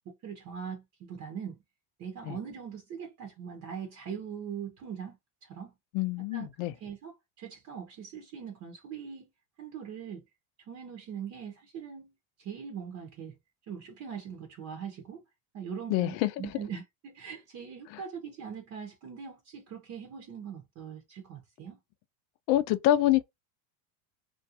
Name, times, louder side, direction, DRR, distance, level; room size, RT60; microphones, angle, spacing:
voice 1, 0.1-1.6 2.0-5.7 6.3-6.5 6.8-9.3 9.6-10.2 10.7-12.1 12.4-13.4 13.7-15.2 15.5-21.8, right 7 dB, 40° right, 0.8 m, -41 dB
voice 2, 5.9-6.7 15.9-16.3 22.5-23.2, left 13 dB, 70° left, 0.5 m, -25 dB
2.5 x 2.2 x 2.7 m
cardioid pair, 140°, 42 cm